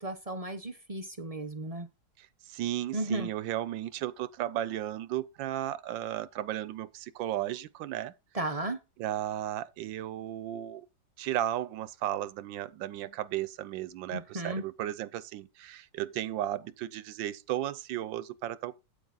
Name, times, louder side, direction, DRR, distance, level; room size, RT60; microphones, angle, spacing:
voice 1, 0.0-1.9 2.9-3.3 8.3-8.8 14.1-14.6, right 2 dB, 40° right, 0.5 m, -34 dB
voice 2, 2.2-8.1 8.4-8.7 9.0-10.9 11.2-18.8, right 12 dB, 85° right, 1.4 m, -35 dB
8.7 x 8.4 x 4.0 m
omnidirectional pair, 2.0 m